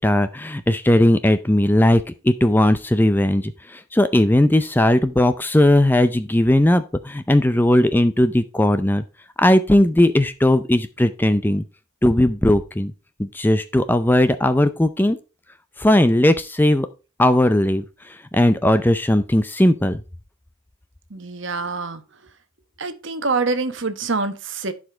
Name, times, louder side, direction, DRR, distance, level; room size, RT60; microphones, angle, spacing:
voice 1, 0.0-9.0 9.4-11.6 12.0-12.9 13.2-15.2 15.8-16.9 17.2-20.0, left 1 dB, 10° left, 0.4 m, -18 dB
voice 2, 21.1-22.0 22.8-24.7, right 3 dB, 55° right, 1.1 m, -25 dB
11.5 x 5.0 x 3.3 m
head